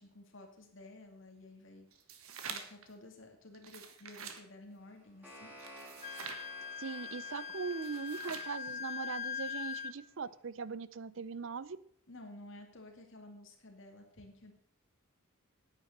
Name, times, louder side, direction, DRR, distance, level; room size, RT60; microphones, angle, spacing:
voice 1, 0.0-1.9 2.4-5.6 12.1-14.5, left 2 dB, 60° left, 4 dB, 2.4 m, -53 dB
sound 1, 1.9-2.9 3.5-4.4 5.6-6.5 7.7-8.6, right 6 dB, 75° right, 1.5 m, -46 dB
sound 2, 4.8-9.9, equal, 10° right, 5.5 m, -55 dB
Wind instrument woodwind instrument, 6.0-9.9, left 6 dB, 35° left, 1.0 m, -41 dB
voice 2, 6.8-11.8, right 5 dB, 60° right, 18 dB, 0.5 m, -40 dB
9.9 x 9.1 x 6.5 m, 0.64 s
head